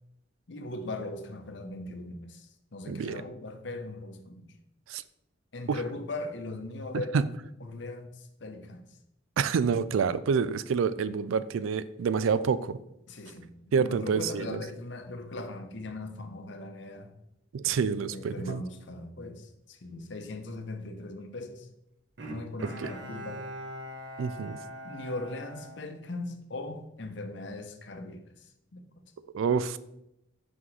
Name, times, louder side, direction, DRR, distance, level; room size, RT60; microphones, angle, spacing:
voice 1, 0.5-4.5 5.5-7.3 7.6-8.9 13.1-17.1 18.1-21.7 22.3-23.4 24.8-28.8, left 2 dB, 65° left, 6 dB, 0.7 m, -39 dB
voice 2, 2.9-3.2 4.9-5.0 5.7-5.8 7.1-7.3 9.4-12.8 13.7-14.6 17.5-18.6 22.8-22.9 24.2-24.6 29.3-29.8, right 6 dB, 90° right, 15 dB, 0.4 m, -27 dB
Bowed string instrument, 22.2-26.7 27.1-27.2, equal, 60° right, 0.8 m, -43 dB
5.9 x 5.4 x 3.2 m, 0.82 s
head